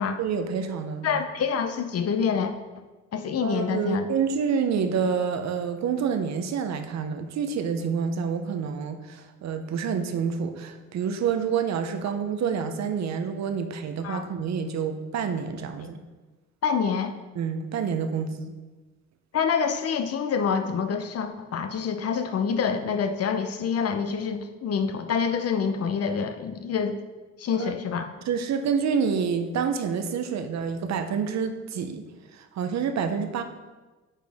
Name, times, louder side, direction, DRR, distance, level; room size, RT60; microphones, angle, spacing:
voice 1, 0.2-1.2 3.4-16.0 17.4-18.5 27.5-27.7 28.3-32.0 32.3-33.4, right 6 dB, 60° right, 7 dB, 0.7 m, -28 dB
voice 2, 1.0-2.5 3.1-4.1 14.0-14.2 16.6-17.1 19.3-27.0 27.4-28.1, left 6 dB, 55° left, 7 dB, 0.7 m, -26 dB
9.7 x 4.2 x 3.5 m, 1.2 s
cardioid pair, 90°, 30 cm